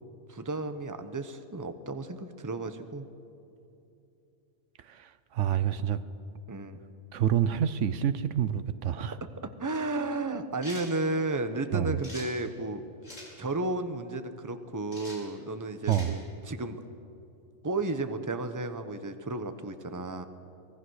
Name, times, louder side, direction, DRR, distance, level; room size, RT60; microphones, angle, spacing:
voice 1, 0.3-3.1 6.5-6.8 9.2-12.8 13.4-16.8 17.6-20.2, right 2 dB, 15° right, 9 dB, 0.9 m, -33 dB
voice 2, 4.9-6.0 7.1-9.2 11.7-11.9 15.9-16.2, right 10 dB, 75° right, 13 dB, 1.0 m, -28 dB
sound 1, 10.6-10.9 12.0-12.3 13.0-13.3 14.9-15.2 15.8-16.1, left 1 dB, 85° left, 5.5 m, -44 dB
25.0 x 18.5 x 6.4 m, 2.7 s
omnidirectional pair, 1.3 m